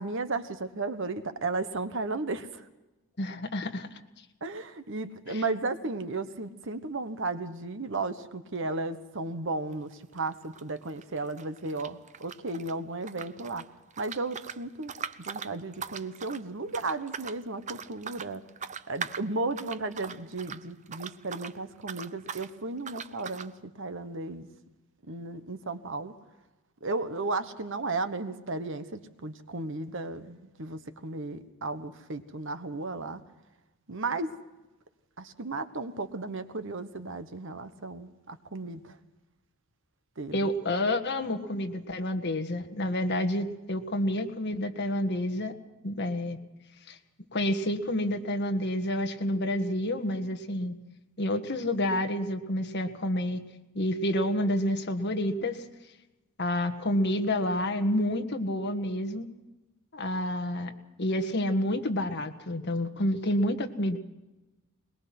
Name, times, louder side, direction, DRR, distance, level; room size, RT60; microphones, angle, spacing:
voice 1, 0.0-2.6 4.4-13.6 14.0-14.9 15.2-18.4 18.9-24.5 25.1-26.1 26.8-33.2 33.9-34.3 35.2-39.0 40.2-40.5, right 3 dB, 60° right, 10 dB, 1.3 m, -34 dB
voice 2, 3.2-3.9 5.3-5.4 40.3-45.5 45.8-46.4 46.9-47.0 47.3-50.8 51.2-53.4 53.7-55.6 56.4-59.3 59.9-60.7 61.0-64.0, left 1 dB, 50° left, 5 dB, 1.7 m, -29 dB
sound 1, 9.7-9.9 10.2-12.7 13.0-21.6 21.8-22.5 22.8-23.5, right 6 dB, 35° right, 0.6 m, -41 dB
22.0 x 21.5 x 6.1 m, 1.1 s
head